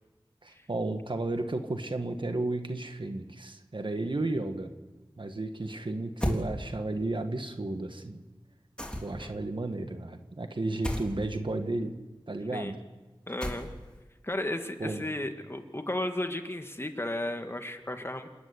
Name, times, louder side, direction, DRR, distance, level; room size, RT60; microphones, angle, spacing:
voice 1, 0.4-4.7 5.2-8.2 9.0-11.9 12.3-12.8 14.8-15.0, right 2 dB, 60° right, 6 dB, 1.7 m, -33 dB
sound 1, 6.2-6.5 8.8-9.3 10.8-11.1 13.4-13.9, equal, 10° left, 3.6 m, -32 dB
voice 2, 13.3-13.7 14.2-18.3, left 1 dB, 25° left, 6 dB, 2.0 m, -34 dB
28.5 x 9.7 x 9.7 m, 1.2 s
wide cardioid pair, 40°, 9 cm